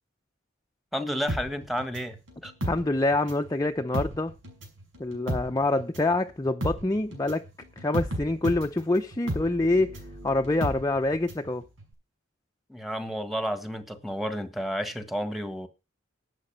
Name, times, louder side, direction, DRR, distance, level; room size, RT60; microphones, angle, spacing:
voice 1, 0.9-2.5 12.7-15.7, equal, ahead, 1.5 m, -31 dB
sound 1, 1.3-3.5 3.8-11.5 11.8-11.9, right 1 dB, 90° right, 5.9 m, -34 dB
voice 2, 2.7-4.3 5.0-7.4 7.8-10.0 10.2-11.6, left 2 dB, 20° left, 0.6 m, -26 dB
12.0 x 8.3 x 5.6 m
head